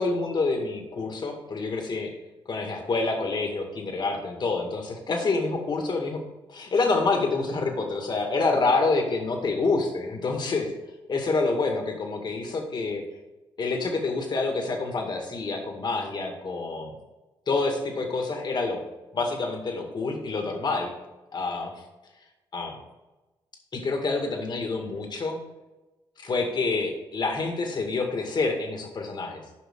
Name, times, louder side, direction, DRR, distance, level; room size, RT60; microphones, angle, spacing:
voice 1, 0.0-2.1 2.5-6.2 6.5-10.7 11.1-13.0 13.6-16.9 17.5-18.8 19.1-20.9 21.3-21.7 22.5-22.8 23.7-25.4 26.2-29.4, left 3 dB, 50° left, 3 dB, 2.0 m, -27 dB
14.5 x 5.5 x 3.8 m, 1.1 s
cardioid pair, 90°, 10 cm